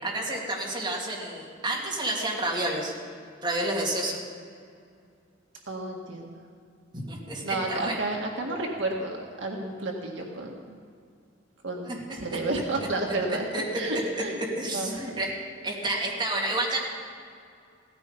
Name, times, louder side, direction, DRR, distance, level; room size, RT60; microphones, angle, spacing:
voice 1, 0.0-2.9 3.4-4.2 6.9-7.9 11.9-12.4 13.5-13.8 14.4-15.3 15.6-16.8, right 1 dB, 25° right, -3 dB, 3.0 m, -30 dB
voice 2, 5.7-6.3 7.4-10.8 11.6-13.4 13.7-14.4 14.7-15.1, right 2 dB, 65° right, 0 dB, 1.8 m, -31 dB
16.5 x 14.5 x 5.3 m, 2.3 s
head